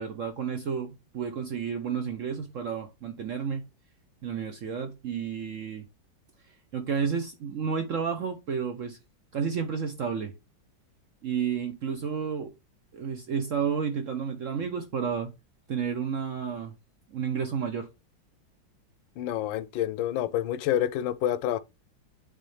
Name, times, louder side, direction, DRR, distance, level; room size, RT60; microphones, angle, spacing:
voice 1, 0.0-3.6 4.2-5.8 6.7-9.0 9.3-10.3 11.2-12.5 12.9-15.3 15.7-16.7 17.1-17.9, right 6 dB, 60° right, 0.8 m, -31 dB
voice 2, 19.2-21.6, left 11 dB, 80° left, 1.3 m, -28 dB
9.1 x 3.7 x 3.3 m
omnidirectional pair, 2.1 m